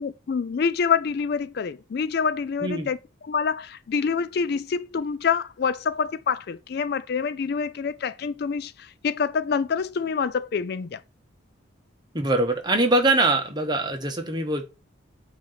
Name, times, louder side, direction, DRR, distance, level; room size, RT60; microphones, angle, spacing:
voice 1, 0.0-3.0 3.2-11.0, left 6 dB, 55° left, 0.4 m, -26 dB
voice 2, 12.1-14.7, right 2 dB, 20° right, 1.1 m, -23 dB
8.4 x 2.9 x 5.7 m
head